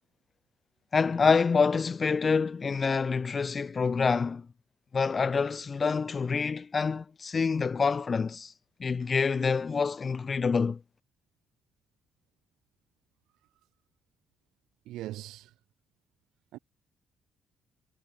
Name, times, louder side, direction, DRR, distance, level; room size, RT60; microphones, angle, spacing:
voice 1, 0.9-4.5 4.9-8.5 8.8-10.8, left 5 dB, 35° left, 0.6 m, -27 dB
voice 2, 14.8-15.5 16.5-16.6, right 15 dB, 90° right, 1.2 m, -40 dB
cardioid pair, 90°, 0 cm